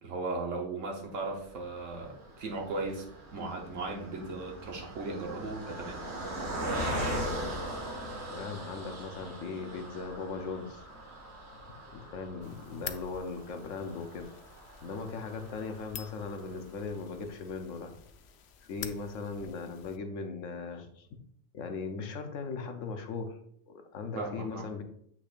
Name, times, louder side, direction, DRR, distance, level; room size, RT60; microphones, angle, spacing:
voice 1, 0.0-3.1 3.3-6.0 24.2-24.6, right 3 dB, 85° right, 0 dB, 1.4 m, -37 dB
Car passing by, 1.4-16.9 17.4-17.5 17.8-18.0, right 1 dB, 60° right, 1.9 m, -40 dB
voice 2, 8.3-10.9 11.9-14.3 14.8-18.0 18.7-21.1 21.5-23.4 23.7-24.8, left 4 dB, 85° left, 6 dB, 1.2 m, -38 dB
sound 1, 12.4-20.0, left 9 dB, 65° left, 0.8 m, -48 dB
8.3 x 6.0 x 2.5 m, 0.67 s
omnidirectional pair, 1.3 m